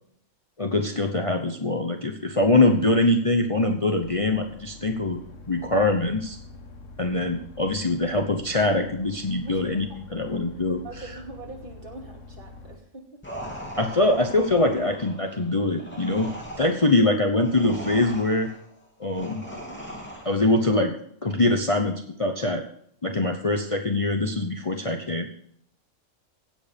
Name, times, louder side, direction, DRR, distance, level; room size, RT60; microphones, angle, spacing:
voice 1, 0.6-5.2 5.5-6.4 7.0-10.8 13.8-16.3 16.6-18.5 19.0-19.4 20.2-20.9 21.2-22.6 23.0-25.3, left 2 dB, 30° left, 4 dB, 0.9 m, -23 dB
sound 1, 4.0-12.8, left 3 dB, 70° left, 1.5 m, -45 dB
voice 2, 9.4-10.0 10.8-13.2 23.0-23.3, right 2 dB, 40° right, 0 dB, 2.7 m, -43 dB
sound 2, 13.2-20.6, equal, 10° left, 2.7 m, -39 dB
16.0 x 7.9 x 5.3 m, 0.66 s
omnidirectional pair, 1.4 m